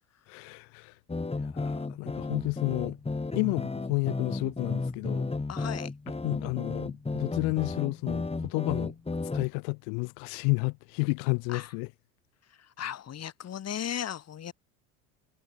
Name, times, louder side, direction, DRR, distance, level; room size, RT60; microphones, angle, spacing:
voice 1, 0.3-1.0 1.4-3.0 3.3-5.3 6.1-8.9 9.3-11.9, left 40 dB or more, 55° left, 1.4 m, -31 dB
sound 1, 1.1-9.5, left 3 dB, 15° left, 4.0 m, -33 dB
voice 2, 5.5-5.9 11.5-11.7 12.6-14.5, left 10 dB, 35° left, 2.9 m, -36 dB
figure-of-eight pair, 70°, 46 cm